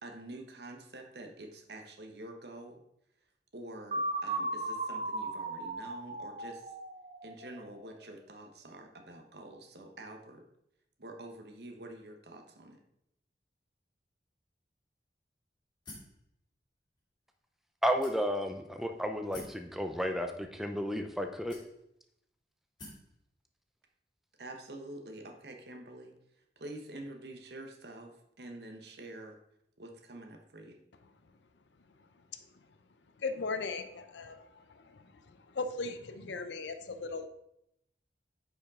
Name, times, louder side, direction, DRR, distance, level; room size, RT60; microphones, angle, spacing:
voice 1, 0.0-2.8 3.5-6.7 7.2-10.4 11.0-12.8 24.4-26.1 26.6-29.4 29.8-30.8, right 1 dB, 70° right, 4 dB, 1.1 m, -47 dB
sound 1, 3.9-7.8, right 2 dB, 35° right, 0.8 m, -36 dB
sound 2, 15.9-16.2 17.0-17.1 18.0-18.5 19.3-19.6 20.6-20.7 21.5-22.0 22.8-23.1, left 1 dB, 25° left, 2.5 m, -49 dB
voice 2, 17.8-21.5, equal, ahead, 5 dB, 0.5 m, -32 dB
voice 3, 33.2-35.0 35.5-37.3, left 3 dB, 85° left, 9 dB, 0.6 m, -38 dB
9.0 x 5.2 x 3.7 m, 0.78 s
head